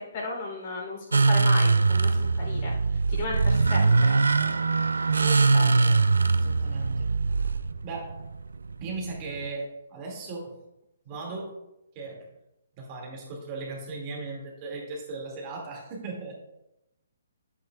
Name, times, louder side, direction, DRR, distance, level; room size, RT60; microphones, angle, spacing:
voice 1, 0.0-4.2 5.2-5.8, left 2 dB, 45° left, -3 dB, 3.2 m, -35 dB
sound 1, 1.1-9.5, right 4 dB, 80° right, 0.3 m, -23 dB
voice 2, 5.5-6.9 7.8-8.1 8.8-10.5 11.1-11.5 12.0-12.2 12.8-16.4, right 3 dB, 30° right, -2 dB, 2.2 m, -37 dB
9.2 x 8.2 x 2.3 m, 0.89 s
hypercardioid pair, 140°, 0 cm